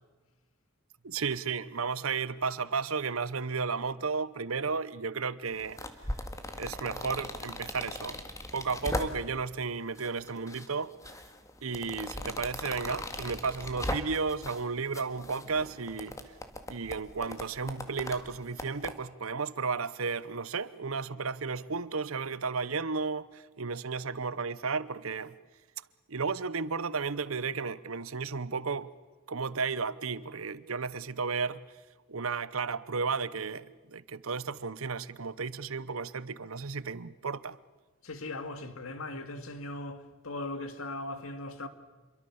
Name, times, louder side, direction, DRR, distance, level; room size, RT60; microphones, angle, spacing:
voice 1, 1.0-5.8 6.6-8.2 8.5-10.9 11.6-16.2 16.7-25.3 26.1-28.9 29.3-31.7 32.1-37.6, right 5 dB, 85° right, 1.0 m, -33 dB
sound 1, 5.5-9.5 10.0-10.7 11.0-14.6 14.9-18.9, left 1 dB, 15° left, 1.9 m, -39 dB
voice 2, 38.0-41.7, left 2 dB, 80° left, 2.1 m, -39 dB
28.0 x 23.0 x 7.1 m
head